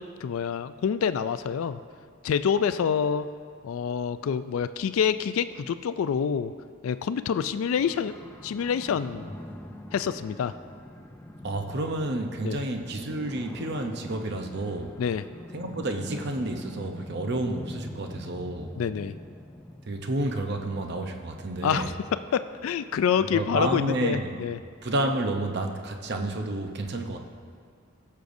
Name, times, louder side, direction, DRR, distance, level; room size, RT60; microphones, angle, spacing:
voice 1, 0.0-1.8 2.2-3.3 3.6-6.5 6.8-8.1 8.4-9.3 9.9-10.5 12.4-12.6 15.0-15.2 18.8-19.1 21.6-21.9 22.3-24.6, left 7 dB, 80° left, 12 dB, 0.3 m, -27 dB
sound 1, 7.8-23.4, left 1 dB, 10° left, 0.4 m, -44 dB
voice 2, 11.4-15.0 15.5-18.7 19.9-21.9 23.3-24.4 24.8-27.2, right 1 dB, 55° right, 4 dB, 0.7 m, -30 dB
17.5 x 6.6 x 2.6 m, 2.1 s
head